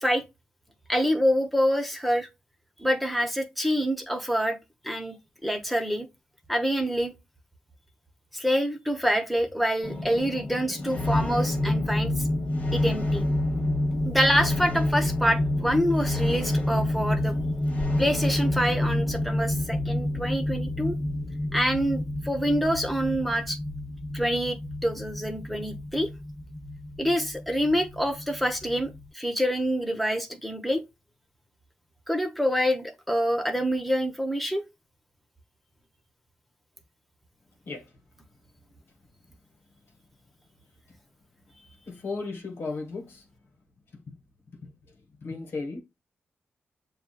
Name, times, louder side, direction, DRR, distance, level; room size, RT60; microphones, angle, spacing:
voice 1, 0.9-2.3 2.8-4.6 4.8-5.2 5.4-6.1 6.5-7.1 8.3-12.1 12.7-13.3 14.0-17.4 18.0-21.0 21.5-23.6 24.1-26.1 27.0-30.8 32.1-34.6, equal, ahead, 1.1 m, -26 dB
sound 1, 9.8-29.1, left 1 dB, 40° left, 1.5 m, -28 dB
voice 2, 42.0-43.0 45.2-45.8, left 3 dB, 75° left, 1.2 m, -33 dB
7.0 x 2.4 x 2.3 m
cardioid pair, 55°, 4 cm